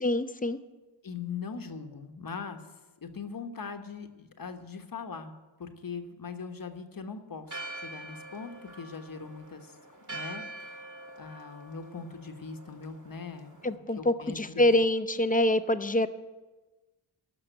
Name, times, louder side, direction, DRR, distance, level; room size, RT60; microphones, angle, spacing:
voice 1, 0.0-0.6 13.6-16.1, left 1 dB, 15° left, 12 dB, 0.6 m, -25 dB
voice 2, 1.0-2.6 3.0-5.3 5.6-9.8 10.1-10.9 11.2-14.6, left 5 dB, 45° left, 6 dB, 1.2 m, -41 dB
Church bell, 7.5-13.8, right 2 dB, 40° right, 1.9 m, -44 dB
12.5 x 5.9 x 7.9 m, 1.2 s
cardioid pair, 65°, 49 cm